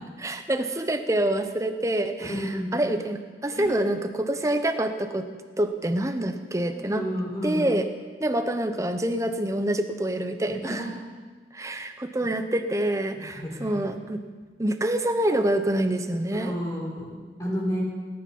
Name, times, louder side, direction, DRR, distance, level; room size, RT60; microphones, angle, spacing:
voice 1, 0.2-5.3 5.6-7.0 7.4-7.9 8.2-10.9 11.5-14.2 14.6-16.5, right 1 dB, 15° right, 8 dB, 0.8 m, -26 dB
voice 2, 2.4-2.7 3.5-3.7 6.7-7.7 10.5-10.9 11.7-11.8 13.1-13.7 16.3-17.8, equal, 20° left, -4 dB, 4.0 m, -32 dB
18.5 x 10.5 x 5.5 m, 1.4 s
head